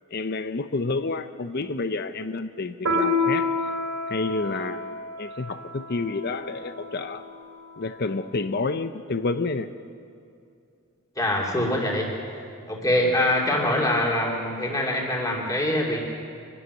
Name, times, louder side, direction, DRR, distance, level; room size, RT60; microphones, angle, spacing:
voice 1, 0.1-3.5 4.1-7.2 7.8-9.7, left 3 dB, 45° left, 10 dB, 0.6 m, -29 dB
Piano, 2.9-7.8, left 2 dB, 75° right, 4.3 m, -29 dB
voice 2, 11.2-12.1 12.7-16.0, left 1 dB, 15° left, -2 dB, 2.5 m, -24 dB
23.5 x 13.0 x 9.4 m, 2.4 s
head